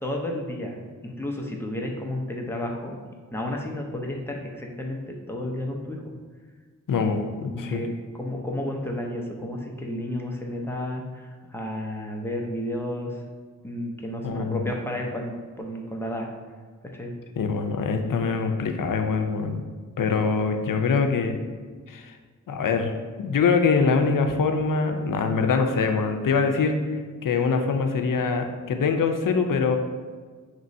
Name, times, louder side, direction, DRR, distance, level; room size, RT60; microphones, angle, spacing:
voice 1, 0.0-3.0 3.3-6.0 7.5-13.2 13.6-16.3 16.9-17.1, left 1 dB, 10° left, 0 dB, 0.6 m, -32 dB
voice 2, 6.9-7.8 14.2-14.6 17.4-19.6 20.0-21.4 21.9-22.1 22.5-22.9 23.2-26.8 27.2-29.8, left 5 dB, 80° left, 5 dB, 0.5 m, -23 dB
5.3 x 3.0 x 2.6 m, 1.5 s
wide cardioid pair, 65°, 32 cm